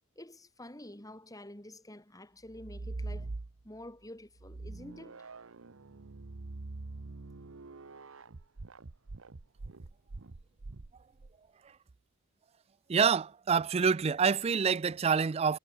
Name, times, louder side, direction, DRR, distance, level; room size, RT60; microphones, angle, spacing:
voice 1, 0.1-3.3 3.6-5.3, left 1 dB, 15° left, 3.2 m, -48 dB
sound 1, 2.5-3.9 4.4-11.3, right 3 dB, 75° right, 0.9 m, -44 dB
voice 2, 12.9-15.6, right 6 dB, 30° right, 0.4 m, -27 dB
head